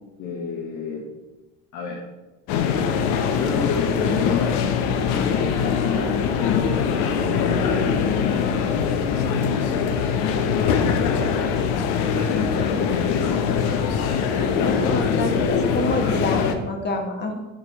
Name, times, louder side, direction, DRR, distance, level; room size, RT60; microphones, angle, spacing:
voice 1, 0.2-1.1 1.7-2.0 3.4-4.6 5.0-9.3 10.3-11.3 12.0-13.8 14.3-16.2, left 4 dB, 60° left, -1 dB, 1.1 m, -30 dB
sound 1, 2.5-16.5, left 6 dB, 80° left, 0.7 m, -22 dB
voice 2, 14.6-17.4, left 2 dB, 30° left, 3 dB, 1.1 m, -27 dB
6.4 x 5.0 x 2.9 m, 1.1 s
supercardioid pair, 100°, 36 cm